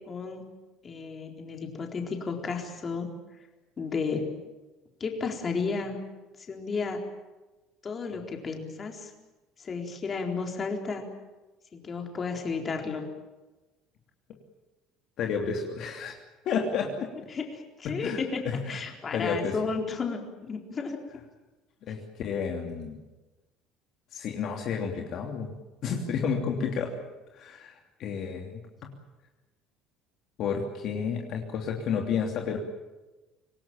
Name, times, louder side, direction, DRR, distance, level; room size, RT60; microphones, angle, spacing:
voice 1, 0.1-0.5 0.8-3.1 3.8-4.3 5.0-6.0 6.4-7.0 7.8-9.1 9.6-11.0 11.7-13.1 17.3-18.4 18.7-21.0, left 4 dB, 25° left, 2 dB, 4.1 m, -33 dB
voice 2, 15.2-16.2 16.4-17.1 17.8-18.8 19.1-19.5 21.8-23.0 24.1-25.5 25.8-26.9 27.3-28.6 30.4-32.6, left 6 dB, 50° left, 2 dB, 2.9 m, -31 dB
26.0 x 18.5 x 9.0 m, 1.1 s
cardioid pair, 140°, 0 cm